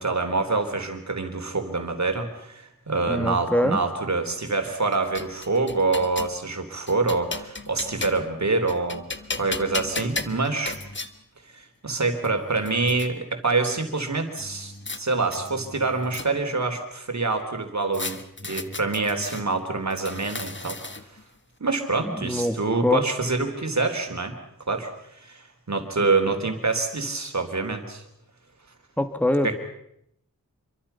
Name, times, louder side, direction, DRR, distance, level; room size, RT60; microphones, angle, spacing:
voice 1, 0.0-9.0 9.4-10.8 11.5-14.7 15.0-18.2 18.4-20.8 21.6-24.4 24.7-24.9 25.2-28.0 29.4-29.5, right 3 dB, 55° right, 6 dB, 3.6 m, -26 dB
voice 2, 3.1-3.8 22.0-23.1 29.0-29.5, left 1 dB, 5° left, 8 dB, 1.9 m, -24 dB
sound 1, 4.6-6.4 6.9-8.3 8.7-11.1 11.9-12.0 12.2-13.1 14.4-15.0 15.3-16.6 17.9-19.4 19.9-21.2, left 3 dB, 35° left, 1.4 m, -35 dB
27.0 x 23.5 x 5.7 m, 0.75 s
wide cardioid pair, 75°, 34 cm